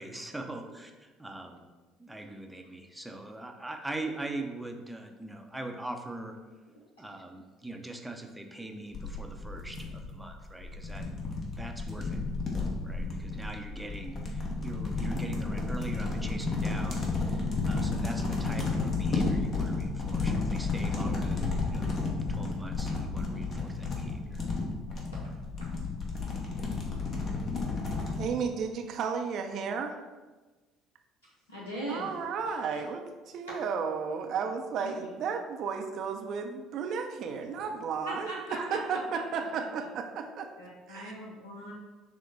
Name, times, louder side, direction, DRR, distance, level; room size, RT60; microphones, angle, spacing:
voice 1, 0.0-1.6 2.0-6.4 7.0-11.1 11.4-12.2 12.8-21.9 22.3-24.4, right 2 dB, 5° right, 3 dB, 0.6 m, -42 dB
sound 1, 8.9-28.3, left 3 dB, 45° left, 1.0 m, -32 dB
voice 2, 28.2-29.9 31.9-33.0 33.3-38.3 38.6-40.5 40.9-41.1, right 6 dB, 55° right, 5 dB, 0.5 m, -33 dB
voice 3, 31.5-32.1 32.7-32.8 34.8-35.0 37.6-37.7 38.1-39.0 39.3-39.6 40.6-41.7, right 1 dB, 85° left, -6 dB, 0.6 m, -40 dB
6.2 x 2.2 x 3.9 m, 1.2 s
figure-of-eight pair, 55°, 0 cm